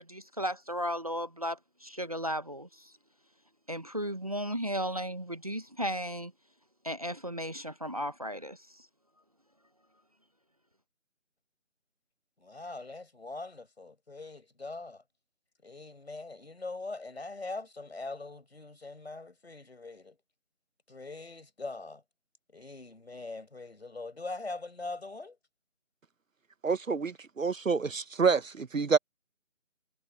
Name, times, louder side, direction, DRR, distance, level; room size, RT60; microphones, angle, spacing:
voice 1, 0.0-2.9 3.7-6.3 6.8-8.6, equal, 30° right, 1.3 m, -35 dB
voice 2, 12.4-15.0 15.6-20.2 20.9-22.0 22.5-25.4, left 3 dB, 55° left, 5.7 m, -42 dB
voice 3, 26.6-29.0, right 5 dB, 80° right, 1.1 m, -28 dB
figure-of-eight pair, 175°, 39 cm